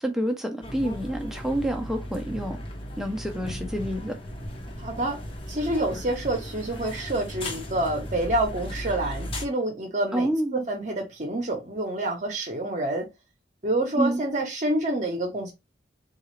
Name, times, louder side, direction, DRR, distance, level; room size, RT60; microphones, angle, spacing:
voice 1, 0.0-2.6 3.0-4.2 10.1-10.7 14.0-14.2, right 1 dB, ahead, 0.5 m, -28 dB
sound 1, 0.6-9.5, equal, 30° left, 0.8 m, -36 dB
voice 2, 4.8-5.2 5.5-13.1 13.6-15.5, right 1 dB, 40° right, 0.8 m, -28 dB
3.8 x 2.4 x 3.1 m
head